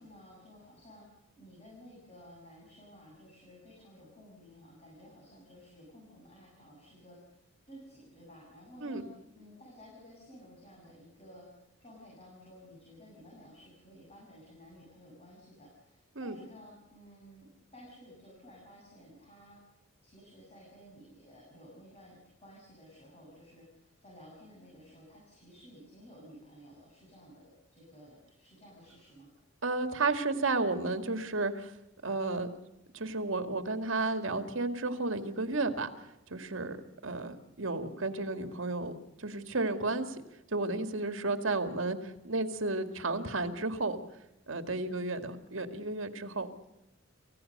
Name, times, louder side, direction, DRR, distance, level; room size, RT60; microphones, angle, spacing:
voice 1, 0.0-7.4 7.7-29.3, equal, 30° left, -4 dB, 7.9 m, -54 dB
voice 2, 29.6-31.7 32.0-32.5 32.9-35.9 36.3-36.8 37.0-38.9 39.2-40.2 40.5-44.0 44.5-46.5, right 3 dB, 75° right, 8 dB, 2.1 m, -32 dB
28.5 x 16.0 x 6.7 m, 0.86 s
head